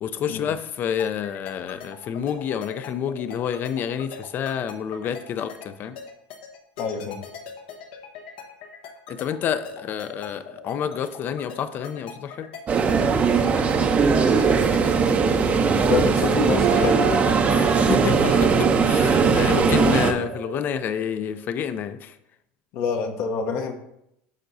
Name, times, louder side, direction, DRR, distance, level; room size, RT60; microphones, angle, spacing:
voice 1, 0.0-6.0 9.1-12.5 17.5-22.2, left 8 dB, 40° left, 12 dB, 0.5 m, -29 dB
sound 1, 1.0-15.7, left 7 dB, 85° left, 1.2 m, -40 dB
voice 2, 6.8-7.2 15.9-17.2 22.7-23.7, left 5 dB, 60° left, 5 dB, 0.9 m, -26 dB
sound 2, 12.7-20.1, right 5 dB, 30° right, 0.7 m, -19 dB
sound 3, 16.6-21.4, right 5 dB, 75° right, 1.7 m, -30 dB
11.5 x 4.4 x 2.7 m, 0.80 s
supercardioid pair, 125°, 5 cm